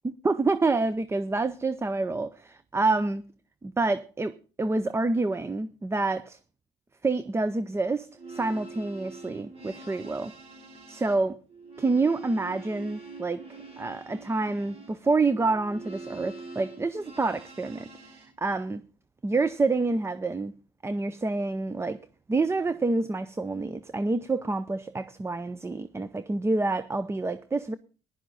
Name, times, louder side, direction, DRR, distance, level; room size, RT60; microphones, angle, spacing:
voice 1, 0.2-3.2 3.6-6.4 7.0-10.3 10.9-11.4 11.8-13.4 13.8-17.9 18.1-18.8 19.2-20.5 20.8-22.0 22.3-27.7, right 3 dB, 15° right, 0.6 m, -27 dB
sound 1, 8.1-18.3, right 3 dB, 35° right, 5.0 m, -45 dB
15.0 x 11.5 x 3.9 m
cardioid pair, 110°, 17 cm